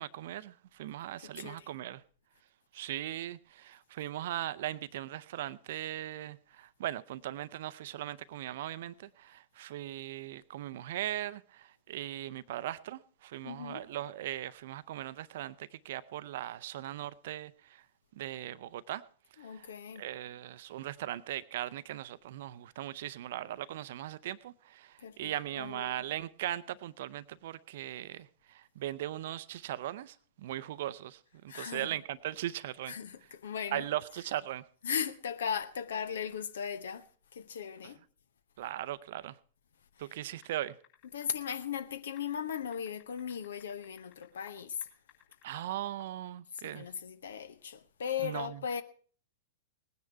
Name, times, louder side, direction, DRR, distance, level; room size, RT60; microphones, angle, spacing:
voice 1, 0.0-2.0 2.7-17.8 18.2-19.0 19.4-19.7 20.0-32.9 33.7-34.6 37.8-37.9 38.6-39.4 40.0-40.7 45.4-46.9 48.2-48.6, right 13 dB, 55° right, 0.6 m, -39 dB
voice 2, 1.4-1.7 13.4-13.8 19.4-20.0 25.0-26.0 31.5-31.9 32.9-33.9 34.8-37.0 37.3-38.0 41.1-44.8 46.6-48.8, left 7 dB, 65° left, 0.9 m, -37 dB
sound 1, 40.4-41.3 41.5-41.6 42.2-44.6 44.8-46.2, left 12 dB, 45° left, 5.8 m, -58 dB
19.5 x 9.7 x 4.5 m
figure-of-eight pair, 100°, 0 cm